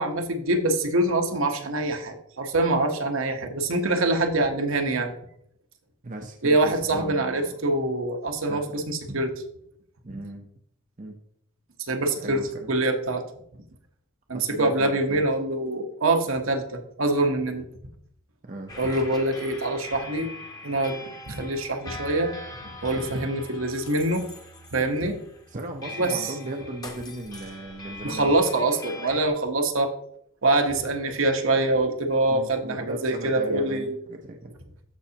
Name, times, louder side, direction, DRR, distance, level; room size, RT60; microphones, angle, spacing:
voice 1, 0.0-5.1 6.4-9.3 10.1-10.2 11.9-12.4 12.7-13.2 14.3-17.7 18.8-20.3 20.6-22.3 22.8-24.2 24.7-25.2 25.9-26.3 28.0-29.9 30.4-34.0, right 2 dB, 65° right, 4 dB, 1.1 m, -25 dB
voice 2, 6.0-7.5 8.5-8.8 10.0-10.5 11.0-11.2 12.0-12.7 14.3-15.2 18.4-18.8 25.5-28.3 32.3-34.5, right 1 dB, 35° right, 2 dB, 0.7 m, -37 dB
sound 1, 18.7-29.3, left 1 dB, 20° left, 1.0 m, -42 dB
13.5 x 5.4 x 2.9 m, 0.70 s
head